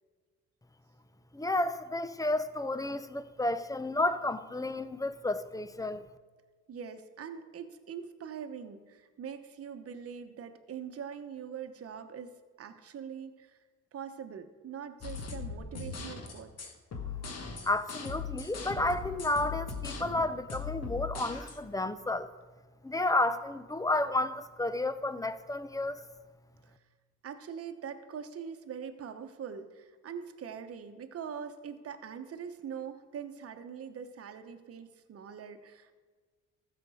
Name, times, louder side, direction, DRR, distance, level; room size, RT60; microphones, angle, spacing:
voice 1, 1.3-6.1 17.6-22.3 22.8-26.0, left 2 dB, 10° left, 0.5 m, -31 dB
voice 2, 6.7-13.6 13.9-16.7 26.6-26.7 27.2-35.9, right 7 dB, 50° right, 1.0 m, -43 dB
sound 1, 15.0-21.6, left 5 dB, 55° left, 1.5 m, -39 dB
14.0 x 6.9 x 4.9 m
cardioid pair, 90°, 30 cm